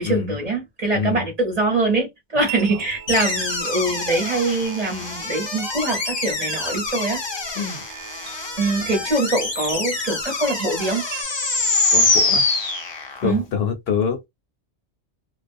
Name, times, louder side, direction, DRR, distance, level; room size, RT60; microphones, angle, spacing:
voice 1, 0.0-7.2 7.5-7.9 8.6-11.0 13.2-13.4, right 2 dB, 35° right, 0.9 m, -23 dB
voice 2, 0.9-1.2 7.6-7.8 11.9-12.4 13.2-14.3, left 6 dB, 65° left, 0.8 m, -25 dB
sound 1, 2.4-11.2, right 10 dB, 85° right, 0.9 m, -38 dB
sound 2, 3.1-13.4, left 3 dB, 45° left, 0.3 m, -25 dB
2.3 x 2.1 x 2.5 m
omnidirectional pair, 1.2 m